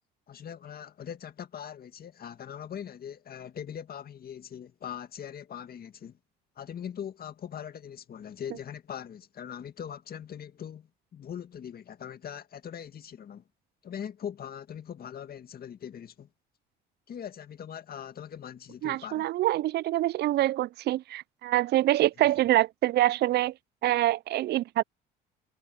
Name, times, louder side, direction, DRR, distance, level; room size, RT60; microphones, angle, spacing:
voice 1, 0.3-6.2 6.6-13.4 13.8-16.3 17.1-19.3 22.2-22.3, left 9 dB, 50° left, 2.1 m, -41 dB
voice 2, 18.8-23.5 23.8-24.8, right 15 dB, 55° right, 0.4 m, -25 dB
supercardioid pair, 75°, 20 cm